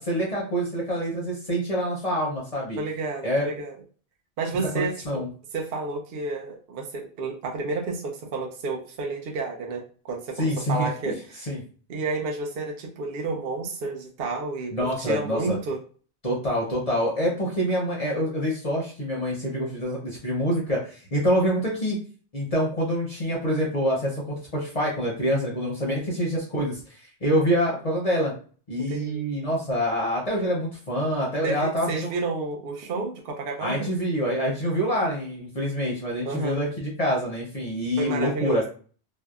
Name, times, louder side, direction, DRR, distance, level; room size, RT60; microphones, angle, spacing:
voice 1, 0.0-2.8 3.2-3.5 4.7-5.3 10.4-10.9 11.5-11.6 14.7-15.6 16.2-22.0 22.3-24.2 24.5-26.8 27.2-28.3 28.7-32.1 33.6-38.7, equal, 40° left, -3 dB, 0.6 m, -26 dB
voice 2, 2.8-3.8 4.4-5.1 5.5-11.5 11.9-15.8 28.9-29.2 31.4-33.9 36.2-36.6 38.0-38.7, right 3 dB, 65° right, 0 dB, 0.7 m, -31 dB
2.6 x 2.0 x 2.3 m, 0.40 s
omnidirectional pair, 1.2 m